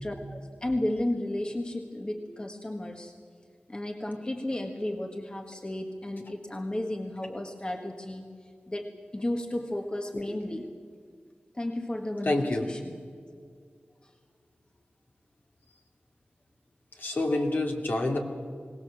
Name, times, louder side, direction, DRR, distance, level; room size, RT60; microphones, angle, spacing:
voice 1, 0.0-3.1 3.7-8.3 8.7-10.7 11.5-12.9 14.0-14.1, left 1 dB, 25° left, 4 dB, 1.6 m, -33 dB
voice 2, 12.2-12.7 17.0-18.2, left 2 dB, 60° left, 2 dB, 2.7 m, -27 dB
22.5 x 18.5 x 7.5 m, 2.1 s
wide cardioid pair, 70°, 4 cm